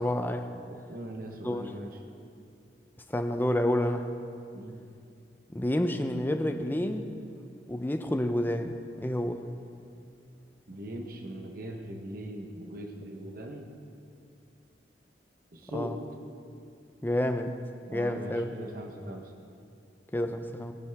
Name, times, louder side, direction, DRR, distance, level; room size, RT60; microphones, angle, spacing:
voice 1, 0.0-0.5 1.4-1.7 3.1-4.1 5.5-7.1 7.7-9.4 15.7-16.0 17.0-17.5 17.9-18.5 20.1-20.7, left 1 dB, 10° left, 7 dB, 0.6 m, -29 dB
voice 2, 0.7-2.0 4.5-4.8 10.7-13.7 15.5-16.0 17.9-19.3, equal, 55° right, 3 dB, 1.1 m, -40 dB
19.0 x 11.0 x 3.5 m, 2.4 s
head